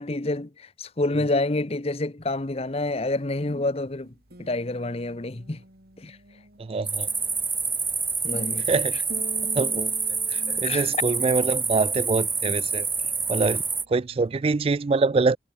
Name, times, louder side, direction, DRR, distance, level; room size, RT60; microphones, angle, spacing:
voice 1, 0.0-4.1 4.4-5.6 6.0-6.2 8.2-8.7 10.5-10.9, left 2 dB, 30° left, 0.9 m, -28 dB
sound 1, 2.2-14.7, equal, 55° right, 6.2 m, -48 dB
voice 2, 6.6-7.1 8.7-9.0 9.5-9.9 10.3-12.9 13.3-13.6 13.9-15.4, right 3 dB, 30° right, 0.3 m, -24 dB
sound 2, 6.9-13.8, right 4 dB, 10° right, 1.6 m, -27 dB
head